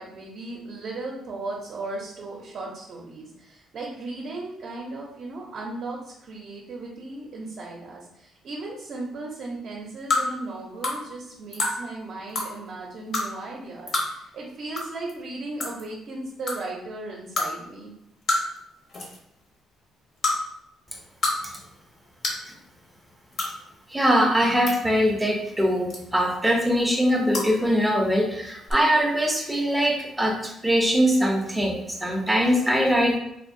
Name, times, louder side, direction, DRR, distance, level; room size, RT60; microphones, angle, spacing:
voice 1, 0.0-18.0, right 2 dB, 50° right, -2 dB, 0.6 m, -36 dB
sound 1, 10.1-10.2 10.8-11.0 11.5-11.7 12.3-12.5 13.1-13.3 13.9-14.1 14.8-14.9 15.1-15.2 15.6-15.8 16.5-16.6 17.4-17.5 18.3-18.6 18.9-19.2 20.2-20.4 21.0-21.3 21.6-21.7 22.2-22.4 23.3-23.5 24.3-24.7 25.9-26.3 27.3-27.5 28.6-28.7, left 2 dB, 50° left, 0.9 m, -26 dB
voice 2, 23.9-33.2, equal, 5° right, -1 dB, 0.6 m, -22 dB
3.5 x 2.6 x 2.6 m, 0.83 s
cardioid pair, 125°, 0 cm